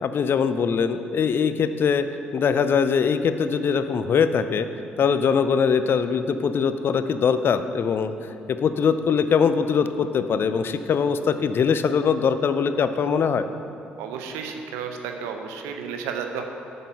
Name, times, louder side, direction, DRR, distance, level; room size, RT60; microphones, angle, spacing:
voice 1, 0.0-2.1 2.3-4.7 5.0-8.1 8.5-13.5, left 6 dB, 50° left, 11 dB, 0.5 m, -22 dB
voice 2, 14.0-16.4, right 6 dB, 75° right, 5 dB, 0.7 m, -32 dB
8.8 x 6.6 x 5.6 m, 2.8 s
hypercardioid pair, 45°, 5 cm